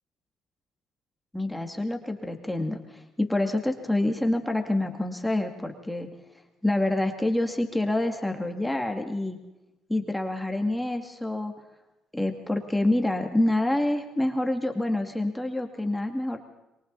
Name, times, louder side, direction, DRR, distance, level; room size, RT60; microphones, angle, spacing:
voice 1, 1.3-6.1 6.6-9.4 9.9-11.5 12.1-16.4, left 1 dB, 5° left, 4 dB, 2.3 m, -27 dB
27.0 x 24.0 x 4.1 m, 0.97 s
cardioid pair, 105°, 0 cm